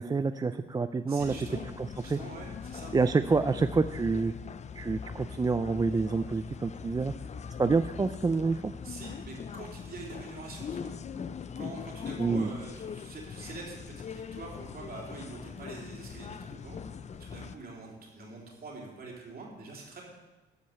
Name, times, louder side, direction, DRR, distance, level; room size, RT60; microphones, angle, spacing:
voice 1, 0.0-1.3 1.8-2.2 2.9-4.3 4.8-7.1 7.6-8.7 12.2-12.5, right 4 dB, 20° right, 10 dB, 0.4 m, -27 dB
voice 2, 1.1-1.6 2.0-2.9 8.8-10.9 11.6-20.0, right 3 dB, 50° right, -2 dB, 3.6 m, -45 dB
sound 1, 1.2-17.6, left 6 dB, 35° left, 0.5 m, -41 dB
12.5 x 5.3 x 7.9 m, 1.1 s
cardioid pair, 90°, 20 cm